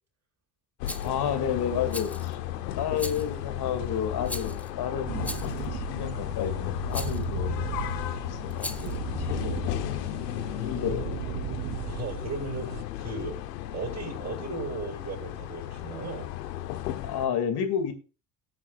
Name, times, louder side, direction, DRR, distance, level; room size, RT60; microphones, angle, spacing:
sound 1, 0.8-17.3, left 13 dB, 75° left, 1.1 m, -34 dB
Rattle, 0.8-1.1 1.9-2.3 3.0-3.3 4.3-4.7 5.2-5.6 6.9-7.2 8.5-9.0, left 1 dB, 5° left, 1.0 m, -38 dB
voice 1, 1.0-2.4 2.7-7.5 8.2-10.1 10.4-11.2 17.0-17.9, left 8 dB, 50° left, 2.6 m, -31 dB
sound 2, 5.1-12.8, right 20 dB, 55° right, 0.5 m, -37 dB
voice 2, 10.4-10.9 11.8-13.4 13.7-16.3, right 3 dB, 35° right, 5.6 m, -36 dB
19.5 x 7.4 x 2.5 m
hypercardioid pair, 60°, 49 cm